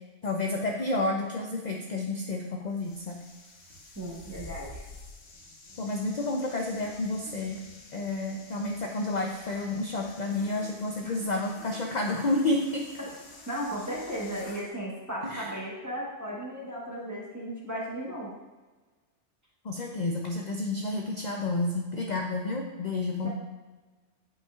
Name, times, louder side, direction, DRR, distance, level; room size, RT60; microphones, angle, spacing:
voice 1, 0.2-3.2 5.8-7.6 7.9-12.9 15.2-15.5 19.6-23.3, left 2 dB, 50° left, 1 dB, 0.6 m, -30 dB
sound 1, 2.7-14.7, left 2 dB, 65° left, 1.2 m, -49 dB
voice 2, 3.9-4.8 11.0-11.2 13.0-13.1 13.5-18.3 23.2-23.3, equal, 15° right, -5 dB, 1.2 m, -36 dB
8.6 x 5.5 x 2.4 m, 1.3 s
omnidirectional pair, 1.2 m